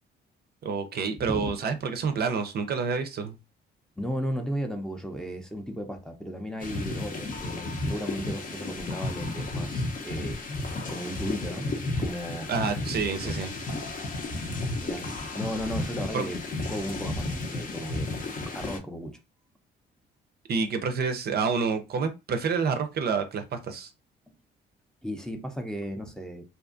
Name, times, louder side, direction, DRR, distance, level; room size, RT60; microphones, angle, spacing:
voice 1, 0.6-3.4 12.5-13.5 16.1-16.3 20.5-23.9, right 5 dB, 55° right, 0.5 m, -28 dB
voice 2, 4.0-10.4 10.9-12.5 12.9-13.3 13.7-13.8 14.8-15.0 15.4-16.4 16.7-18.1 18.5-19.2 25.0-26.6, equal, 5° left, 0.5 m, -35 dB
sound 1, 6.6-18.8, left 2 dB, 45° left, 0.7 m, -33 dB
2.6 x 2.3 x 2.4 m
cardioid pair, 90°, 20 cm